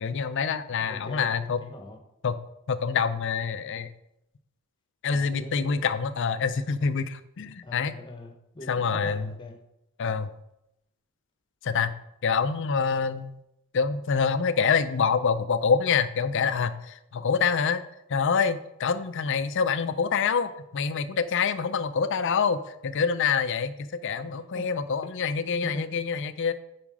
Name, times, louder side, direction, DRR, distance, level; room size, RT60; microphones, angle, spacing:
voice 1, 0.0-1.6 2.2-2.4 2.7-3.9 5.0-7.9 8.7-9.3 10.0-10.3 11.6-11.9 12.2-13.3 13.7-17.8 18.1-26.5, left 6 dB, 55° left, 12 dB, 0.5 m, -26 dB
voice 2, 0.8-2.0 5.1-5.8 7.6-9.6 24.1-24.7 25.6-25.9, left 2 dB, 20° left, 4 dB, 1.0 m, -42 dB
7.2 x 5.1 x 4.8 m, 0.83 s
head